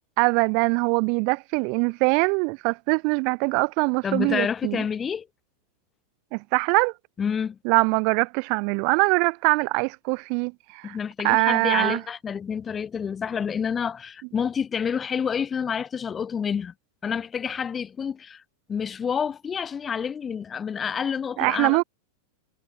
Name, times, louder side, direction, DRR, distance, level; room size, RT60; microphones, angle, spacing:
voice 1, 0.2-4.8 6.3-6.9 7.6-11.0 11.2-12.0 21.4-21.8, right 37 dB, 45° right, 0.7 m, -23 dB
voice 2, 4.0-5.3 7.2-7.6 10.8-16.7 17.0-18.4 18.7-21.8, left 7 dB, 20° left, 1.3 m, -28 dB
figure-of-eight pair, 90°, 0 cm